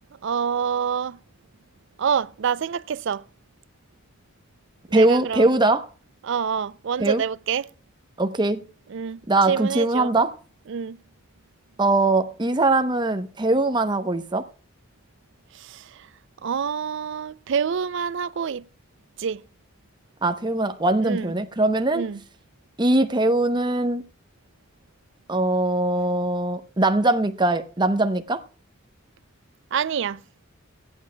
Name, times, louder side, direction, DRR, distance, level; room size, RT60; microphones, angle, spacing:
voice 1, 0.2-1.2 2.0-3.2 4.9-5.5 6.2-7.7 8.9-9.2 9.5-10.1 10.7-11.0 15.5-16.1 16.4-18.6 19.2-19.4 21.0-21.3 21.9-22.2 29.7-30.2, right 7 dB, 60° right, 0.4 m, -26 dB
voice 2, 4.9-5.8 7.0-7.2 8.2-8.6 9.3-10.3 11.8-14.5 20.2-22.1 22.8-24.0 25.3-28.4, right 2 dB, 20° right, 0.8 m, -21 dB
16.5 x 11.0 x 2.2 m
head